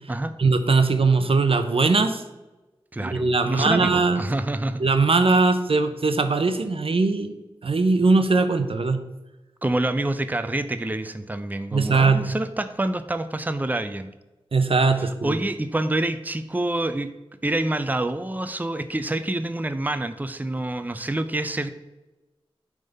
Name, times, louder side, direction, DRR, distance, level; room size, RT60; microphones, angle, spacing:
voice 1, 0.4-2.2 3.0-4.3 4.8-9.0 11.7-12.3 14.5-15.4, right 3 dB, 70° right, 8 dB, 0.7 m, -20 dB
voice 2, 2.9-4.8 9.6-14.1 15.0-17.1 17.4-21.7, right 1 dB, 15° right, 10 dB, 0.5 m, -27 dB
9.1 x 3.7 x 5.3 m, 1.1 s
wide cardioid pair, 50°, 10 cm